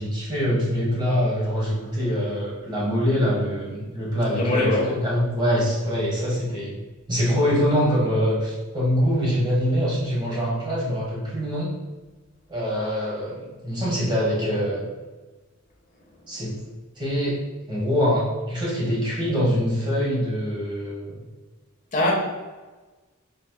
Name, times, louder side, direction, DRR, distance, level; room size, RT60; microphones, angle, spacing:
voice 1, 0.0-6.7 7.1-11.7 12.5-14.8 16.3-16.5 17.0-17.4 17.7-21.1, equal, 20° right, -6 dB, 1.3 m, -24 dB
voice 2, 4.3-4.9 21.9-22.1, left 2 dB, 40° left, -4 dB, 1.4 m, -22 dB
4.7 x 4.7 x 2.3 m, 1.3 s
head